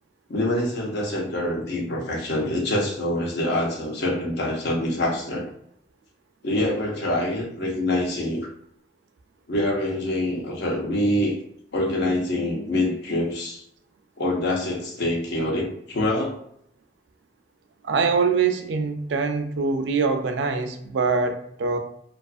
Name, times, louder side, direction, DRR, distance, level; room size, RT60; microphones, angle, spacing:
voice 1, 0.3-5.5 6.4-8.5 9.5-11.4 11.7-13.6 14.2-16.5, left 1 dB, 65° left, -1 dB, 0.7 m, -25 dB
voice 2, 17.8-21.8, right 5 dB, 75° right, 5 dB, 0.4 m, -23 dB
2.4 x 2.4 x 2.4 m, 0.68 s
head